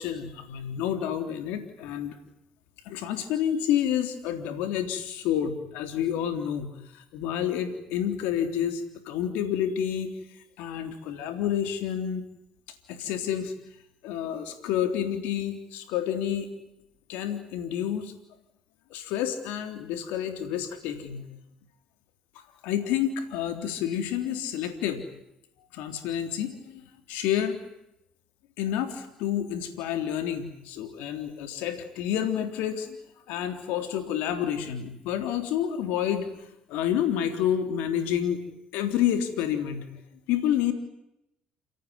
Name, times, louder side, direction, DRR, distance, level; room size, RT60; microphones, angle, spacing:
voice 1, 0.0-2.2 2.9-10.2 10.6-12.3 12.9-13.5 14.0-16.5 17.1-18.1 18.9-21.2 22.6-25.0 25.7-26.8 27.1-27.6 28.6-33.0 33.3-36.3 36.7-38.4 38.7-39.8 40.3-40.7, left 10 dB, 80° left, 8 dB, 3.6 m, -29 dB
29.5 x 17.5 x 9.8 m, 0.83 s
supercardioid pair, 75°, 3 cm